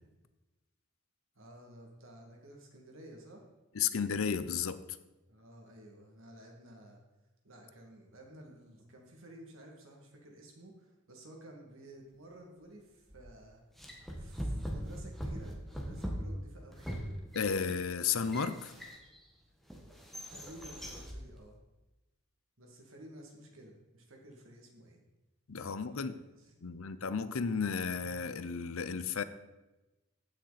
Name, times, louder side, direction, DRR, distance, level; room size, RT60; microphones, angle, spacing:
voice 1, 1.3-3.5 5.3-7.0 7.4-13.6 14.1-16.9 20.3-21.6 22.6-25.0 25.6-26.7, right 1 dB, 65° right, 2.4 m, -53 dB
voice 2, 3.7-4.8 17.3-18.7 25.5-26.2 26.6-29.2, left 6 dB, 70° left, 0.6 m, -33 dB
sound 1, 13.1-13.3 13.8-19.2 19.7-21.2, equal, ahead, 1.3 m, -41 dB
15.5 x 6.5 x 4.2 m
head